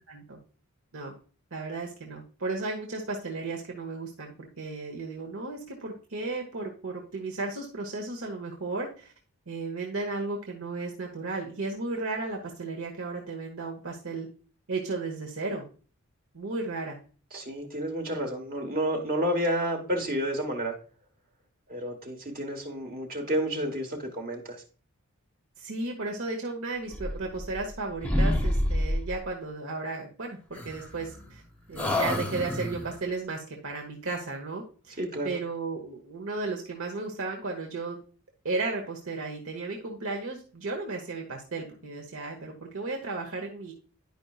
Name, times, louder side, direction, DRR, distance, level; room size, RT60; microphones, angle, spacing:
voice 1, 0.1-0.4 0.9-1.1 1.5-9.1 9.5-14.3 14.7-15.6 16.3-17.0 25.6-31.4 31.7-38.0 38.4-43.7, right 3 dB, 70° right, 1 dB, 1.1 m, -34 dB
voice 2, 17.3-20.7 21.7-24.6 35.0-35.3, equal, 40° right, 2 dB, 1.3 m, -30 dB
sound 1, 26.9-27.8 28.0-29.2 30.5-31.4 31.7-33.0, left 1 dB, 5° left, 0.8 m, -28 dB
10.5 x 5.3 x 2.4 m, 0.38 s
head